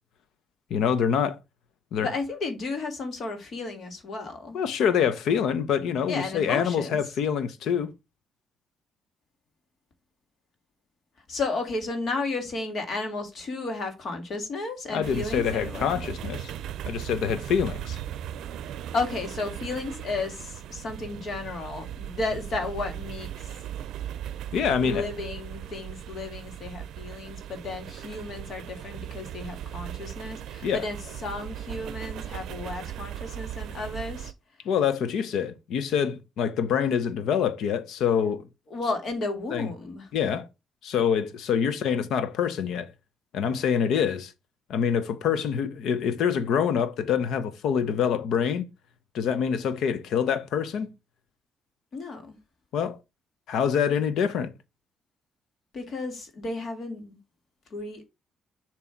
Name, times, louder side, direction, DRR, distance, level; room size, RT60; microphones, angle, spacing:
voice 1, 0.7-1.4 1.9-2.1 4.5-7.9 14.9-16.5 16.9-18.0 24.5-25.0 30.6-30.8 34.6-38.4 39.5-39.7 40.1-40.5 40.8-42.9 43.3-44.3 44.7-48.7 49.1-50.9 52.7-53.0 53.5-54.5, left 7 dB, 80° left, 0.8 m, -25 dB
voice 2, 2.0-4.6 6.1-7.0 11.3-16.0 18.9-23.5 24.8-34.3 38.7-40.1 51.9-52.4 55.7-57.2 57.7-58.1, left 3 dB, 55° left, 2.0 m, -33 dB
sound 1, 15.0-34.3, right 11 dB, 80° right, 0.5 m, -38 dB
7.1 x 3.1 x 4.5 m
cardioid pair, 90°, 0 cm